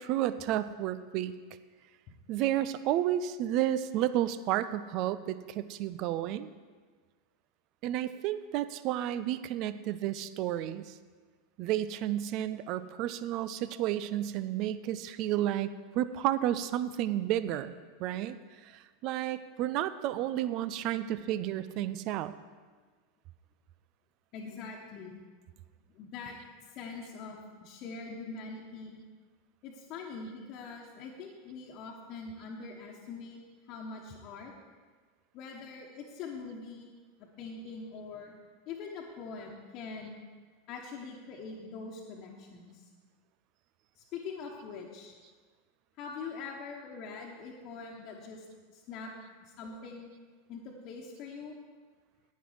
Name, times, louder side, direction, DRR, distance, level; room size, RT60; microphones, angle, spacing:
voice 1, 0.0-1.3 2.3-6.5 7.8-11.0 11.6-17.7 18.0-22.3, right 12 dB, 45° right, 14 dB, 0.5 m, -31 dB
voice 2, 24.3-25.2 25.9-26.4 26.7-29.0 29.6-33.4 33.7-34.5 35.3-36.9 37.2-38.4 38.7-40.2 40.7-42.9 44.0-45.2 46.0-49.1 49.4-50.1 50.5-51.5, left 4 dB, 45° left, -3 dB, 1.2 m, -43 dB
10.0 x 9.3 x 4.8 m, 1.4 s
figure-of-eight pair, 85°, 0 cm